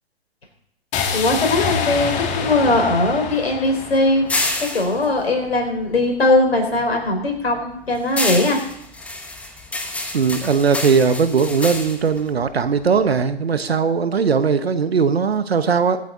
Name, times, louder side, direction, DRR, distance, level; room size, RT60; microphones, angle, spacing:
sound 1, 0.9-5.0, left 6 dB, 20° left, 2.2 m, -26 dB
voice 1, 1.1-4.3 4.6-8.6, left 2 dB, 70° left, 3 dB, 4.5 m, -19 dB
sound 2, 2.4-6.4 6.8-13.2, left 2 dB, 5° left, 0.9 m, -29 dB
voice 2, 10.1-16.0, right 5 dB, 70° right, 10 dB, 1.3 m, -19 dB
23.5 x 8.1 x 4.0 m, 0.76 s
figure-of-eight pair, 120°, 32 cm